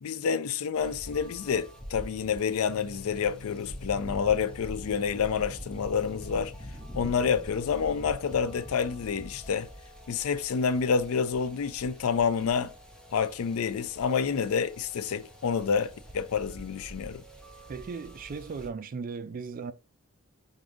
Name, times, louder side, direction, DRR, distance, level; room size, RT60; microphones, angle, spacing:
voice 1, 0.0-6.5 6.9-9.7 10.1-12.7 13.1-17.2, left 6 dB, 75° left, 0.4 m, -28 dB
sound 1, 0.7-18.7, equal, 5° left, 0.6 m, -45 dB
sound 2, 2.6-9.5, left 5 dB, 35° left, 0.8 m, -51 dB
voice 2, 17.7-19.7, right 5 dB, 40° right, 0.3 m, -37 dB
4.7 x 2.6 x 2.5 m
head